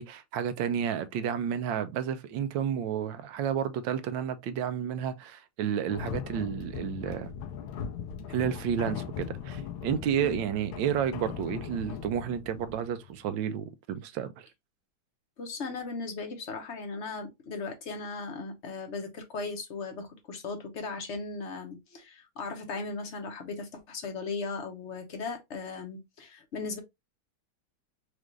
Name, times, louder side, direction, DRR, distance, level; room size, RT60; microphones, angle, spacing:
voice 1, 0.0-7.3 8.3-14.5, right 8 dB, 75° right, 1.2 m, -31 dB
sound 1, 5.9-13.3, left 8 dB, 85° left, 1.5 m, -39 dB
voice 2, 15.4-26.8, left 4 dB, 45° left, 0.9 m, -37 dB
4.9 x 2.5 x 3.1 m
omnidirectional pair, 2.3 m